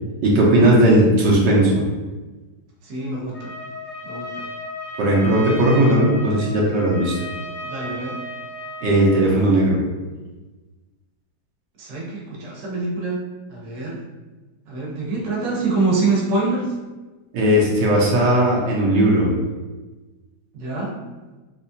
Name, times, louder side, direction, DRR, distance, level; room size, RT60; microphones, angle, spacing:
voice 1, 0.2-1.8 5.0-7.2 8.8-9.8 17.3-19.3, right 1 dB, 85° right, -4 dB, 1.5 m, -17 dB
voice 2, 2.8-3.5 4.0-4.5 7.6-8.2 11.8-13.2 13.5-14.0 14.7-16.7 20.5-21.0, right 3 dB, 60° right, -4 dB, 1.2 m, -25 dB
Trumpet, 3.3-9.2, left 1 dB, 55° left, 1.1 m, -34 dB
3.4 x 2.9 x 2.7 m, 1.2 s
omnidirectional pair, 1.9 m